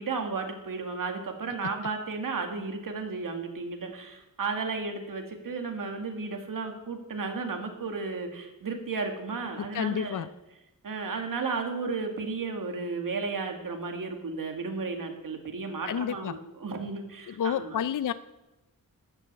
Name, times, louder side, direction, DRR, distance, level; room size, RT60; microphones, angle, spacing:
voice 1, 0.0-10.3 10.8-17.8, right 4 dB, 70° right, 4 dB, 2.2 m, -34 dB
voice 2, 9.6-10.3 15.9-16.4 17.3-18.1, left 9 dB, 65° left, 14 dB, 0.5 m, -30 dB
13.0 x 9.1 x 8.2 m, 1.0 s
wide cardioid pair, 155°, 34 cm